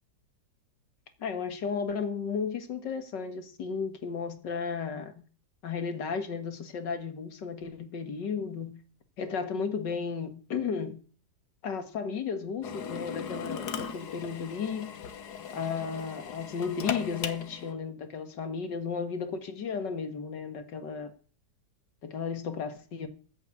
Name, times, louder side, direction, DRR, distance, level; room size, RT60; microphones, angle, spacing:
voice 1, 1.2-5.2 5.6-8.8 9.2-11.0 11.6-15.0 15.5-21.1 22.0-23.1, left 6 dB, 85° left, 2.4 m, -34 dB
Drill, 12.6-17.7, left 7 dB, 70° left, 1.7 m, -38 dB
14.5 x 6.9 x 8.4 m
omnidirectional pair, 1.8 m